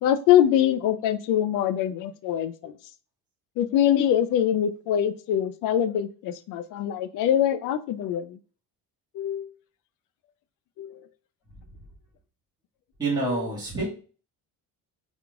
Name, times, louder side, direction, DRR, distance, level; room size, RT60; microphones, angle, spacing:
voice 1, 0.0-2.7 3.6-8.4 9.1-9.5 10.8-11.0 13.3-13.4, left 10 dB, 65° left, 11 dB, 0.5 m, -24 dB
voice 2, 13.0-13.9, right 3 dB, 10° right, -6 dB, 1.8 m, -27 dB
4.5 x 3.6 x 2.4 m, 0.39 s
cardioid pair, 175°, 35 cm